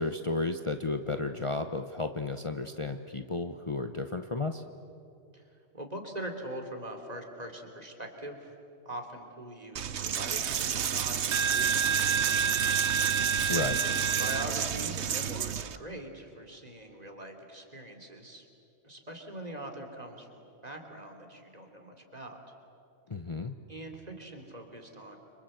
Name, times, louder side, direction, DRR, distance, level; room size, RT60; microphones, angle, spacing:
voice 1, 0.0-4.6 13.5-13.8 23.1-23.5, left 3 dB, 30° left, 7 dB, 0.9 m, -33 dB
voice 2, 5.3-8.5 8.8-12.8 14.2-18.5 18.8-22.4 23.7-25.2, right 1 dB, 35° right, 4 dB, 3.3 m, -43 dB
Coin (dropping), 9.8-15.8, right 7 dB, 80° right, 1.2 m, -28 dB
29.5 x 25.5 x 7.9 m, 2.6 s
omnidirectional pair, 1.1 m